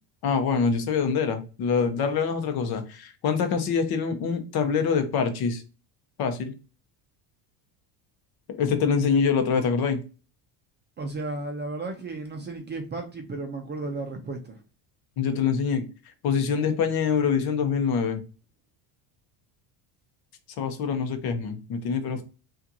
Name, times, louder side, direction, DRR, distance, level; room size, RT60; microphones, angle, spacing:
voice 1, 0.2-5.6 6.2-6.5 8.6-10.0 15.2-15.8 16.2-18.2 20.6-22.2, left 6 dB, 50° left, 0.9 m, -25 dB
voice 2, 11.0-14.6, right 2 dB, 25° right, 0.5 m, -34 dB
5.5 x 2.5 x 2.7 m
cardioid pair, 140°, 48 cm